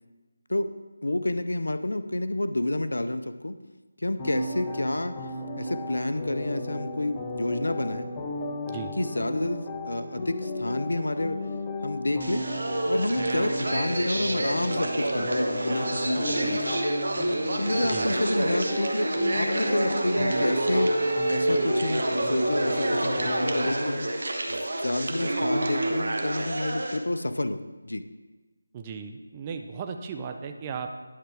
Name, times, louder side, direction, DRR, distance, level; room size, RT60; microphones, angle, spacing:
voice 1, 1.0-3.6 4.0-5.2 5.6-8.1 9.0-11.4 11.8-12.5 12.8-16.6 17.6-20.9 21.3-24.1 24.5-28.1, left 1 dB, 80° left, 10 dB, 0.5 m, -29 dB
sound 1, 4.2-23.7, left 2 dB, 15° left, 0.7 m, -35 dB
sound 2, 12.2-27.0, right 1 dB, 65° right, 1.0 m, -28 dB
voice 2, 28.7-30.9, right 6 dB, 20° right, 5 dB, 0.4 m, -36 dB
10.0 x 5.8 x 3.4 m, 1.2 s
figure-of-eight pair, 165°, 0 cm